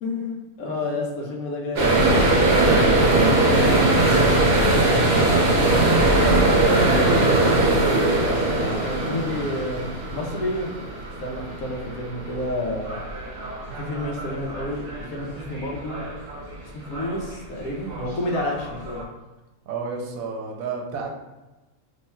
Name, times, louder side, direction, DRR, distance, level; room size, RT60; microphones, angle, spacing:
voice 1, 0.0-2.2 2.6-2.9 8.0-10.7 11.2-13.0 13.7-16.1 16.4-19.0, left 1 dB, 80° left, -1 dB, 1.2 m, -30 dB
sound 1, 1.8-16.5 16.9-17.3 17.7-19.0, right 2 dB, 55° right, 0.9 m, -21 dB
voice 2, 3.8-6.2 19.7-21.1, right 4 dB, 80° right, 1 dB, 1.0 m, -32 dB
3.1 x 2.2 x 4.2 m, 1.1 s
omnidirectional pair, 1.5 m